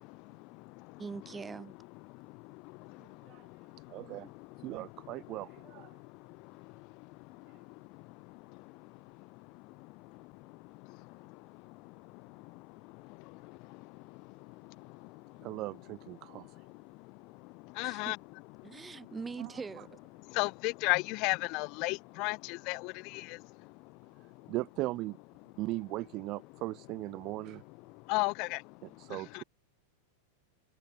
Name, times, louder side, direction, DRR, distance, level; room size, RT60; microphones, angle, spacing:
voice 1, 1.0-1.7 17.8-18.1 18.6-19.9, right 5 dB, 15° right, 6.9 m, -42 dB
voice 2, 3.9-4.3 4.6-5.9 15.4-16.5 19.4-19.5 24.5-25.2 25.6-27.6 29.0-29.4, right 19 dB, 40° right, 0.6 m, -38 dB
voice 3, 17.8-18.2 20.4-23.2 28.1-28.6 29.3-29.4, left 28 dB, 45° left, 0.4 m, -32 dB
figure-of-eight pair, 90°, 0 cm